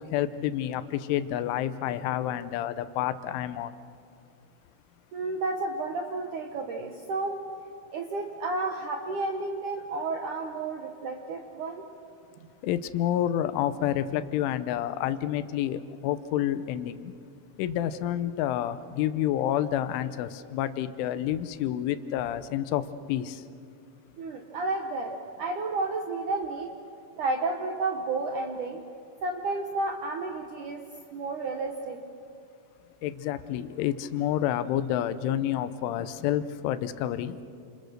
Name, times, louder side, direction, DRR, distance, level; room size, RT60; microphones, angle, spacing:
voice 1, 0.0-3.7 12.6-17.1 17.6-22.8 23.1-23.4 33.0-37.4, left 11 dB, 85° left, 12 dB, 3.3 m, -29 dB
voice 2, 5.1-7.4 7.9-11.9 24.2-25.1 25.4-26.7 27.2-28.8 29.2-30.8 31.1-32.0, right 3 dB, 70° right, 3 dB, 1.9 m, -31 dB
30.0 x 27.5 x 6.6 m, 2.4 s
omnidirectional pair, 5.4 m